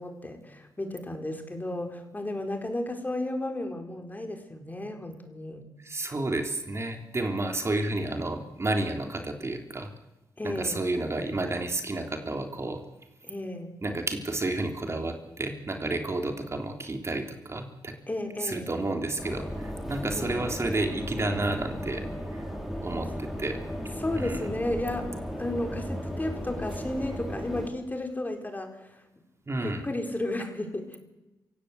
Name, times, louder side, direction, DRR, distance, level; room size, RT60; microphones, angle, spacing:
voice 1, 0.0-5.6 10.4-10.8 13.2-13.7 18.1-18.7 20.1-20.4 24.0-25.1 25.4-29.0 29.5-31.0, left 1 dB, 20° left, 4 dB, 4.5 m, -33 dB
voice 2, 5.8-9.9 10.4-12.8 13.8-17.9 18.4-22.0 22.3-22.4 22.8-23.6 24.1-24.4 29.5-29.8, right 2 dB, 35° right, 4 dB, 3.4 m, -31 dB
sound 1, 19.2-27.7, equal, ahead, 6.3 m, -35 dB
26.5 x 17.0 x 8.1 m, 0.98 s
cardioid pair, 70°, 8 cm